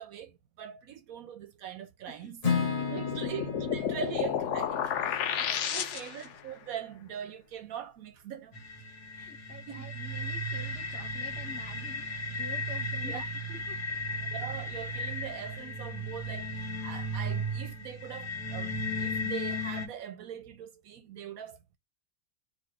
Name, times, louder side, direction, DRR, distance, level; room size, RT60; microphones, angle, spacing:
voice 1, 0.0-2.4 2.9-8.6 9.4-9.9 13.0-13.3 14.3-21.8, right 9 dB, 70° right, 0.9 m, -42 dB
Acoustic guitar / Strum, 2.4-6.5, left 5 dB, 25° left, 1.1 m, -34 dB
sound 1, 2.8-6.4, left 9 dB, 60° left, 0.8 m, -32 dB
voice 2, 5.4-5.8 9.1-14.0, left 4 dB, 45° left, 1.3 m, -48 dB
sound 2, 8.5-19.9, left 1 dB, 80° left, 1.9 m, -35 dB
4.0 x 2.6 x 4.5 m
omnidirectional pair, 1.7 m